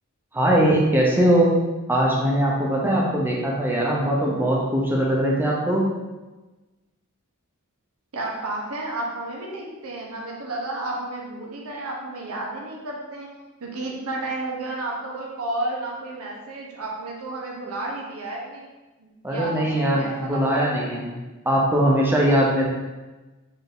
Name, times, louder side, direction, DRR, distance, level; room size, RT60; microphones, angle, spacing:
voice 1, 0.3-1.6 1.9-5.9 19.2-21.2 21.5-22.7, right 1 dB, 10° right, -3 dB, 0.5 m, -21 dB
voice 2, 8.1-13.3 13.6-18.7 19.0-20.8, right 2 dB, 85° right, -2 dB, 0.8 m, -32 dB
3.9 x 2.6 x 3.6 m, 1.2 s
head